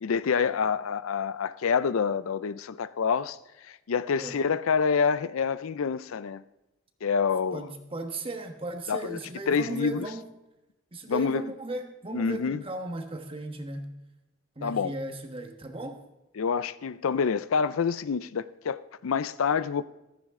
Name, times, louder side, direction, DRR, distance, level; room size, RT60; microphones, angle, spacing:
voice 1, 0.0-3.4 3.6-6.4 7.0-7.7 8.9-9.2 9.5-10.1 11.1-11.4 12.1-12.6 14.6-14.9 16.4-19.8, left 6 dB, 85° left, 0.5 m, -27 dB
voice 2, 7.5-10.2 10.9-13.9 14.6-16.0, right 2 dB, 25° right, 1.3 m, -36 dB
15.0 x 13.5 x 3.7 m
head